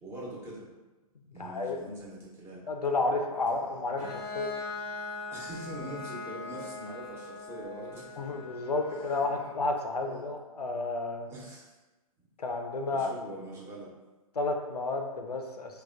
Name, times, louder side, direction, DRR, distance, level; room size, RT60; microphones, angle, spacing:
voice 1, 0.0-0.6 1.3-2.6 3.5-3.8 4.7-4.8 5.3-8.4 9.1-9.2 10.0-10.3 11.3-11.7 12.9-13.9, right 1 dB, 15° right, -5 dB, 0.6 m, -43 dB
voice 2, 1.4-1.8 2.7-4.5 8.2-11.3 12.4-13.1 14.4-15.8, left 3 dB, 90° left, 4 dB, 0.4 m, -31 dB
Bowed string instrument, 4.0-9.6, left 3 dB, 80° right, 0.8 m, -41 dB
3.2 x 2.1 x 2.4 m, 1.1 s
figure-of-eight pair, 120°, 20 cm